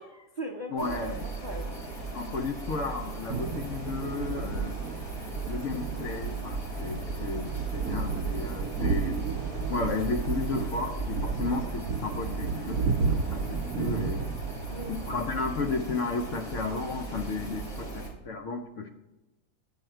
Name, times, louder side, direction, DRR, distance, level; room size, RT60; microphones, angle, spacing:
voice 1, 0.0-1.7 8.8-9.0 14.7-14.9, right 2 dB, 50° right, 0 dB, 0.5 m, -39 dB
voice 2, 0.7-1.3 2.1-4.8 5.1-9.2 9.7-14.2 14.9-18.9, left 4 dB, 65° left, 4 dB, 0.8 m, -33 dB
sound 1, 0.8-18.1, right 3 dB, 45° left, 3.0 m, -38 dB
sound 2, 3.3-15.5, right 5 dB, 70° right, 1.0 m, -33 dB
8.9 x 5.6 x 4.4 m, 1.0 s
omnidirectional pair, 1.8 m